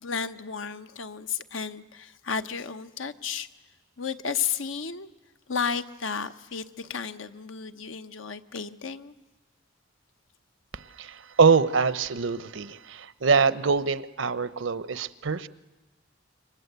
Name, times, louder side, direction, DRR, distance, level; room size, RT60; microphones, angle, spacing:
voice 1, 0.0-3.5 4.0-5.1 5.5-9.1, left 6 dB, 90° left, 10 dB, 1.0 m, -33 dB
voice 2, 10.7-15.5, right 5 dB, 80° right, 15 dB, 0.8 m, -24 dB
28.5 x 23.5 x 8.2 m, 1.1 s
head